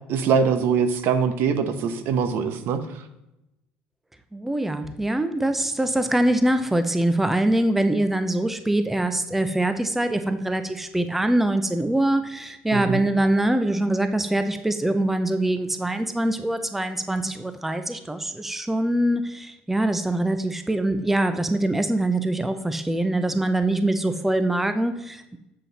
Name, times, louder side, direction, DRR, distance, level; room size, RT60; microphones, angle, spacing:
voice 1, 0.1-2.8 12.7-13.0, right 6 dB, 60° right, 9 dB, 0.9 m, -22 dB
voice 2, 4.3-25.4, right 1 dB, 5° right, 9 dB, 0.6 m, -23 dB
7.6 x 7.5 x 4.1 m, 0.89 s
cardioid pair, 115°, 4 cm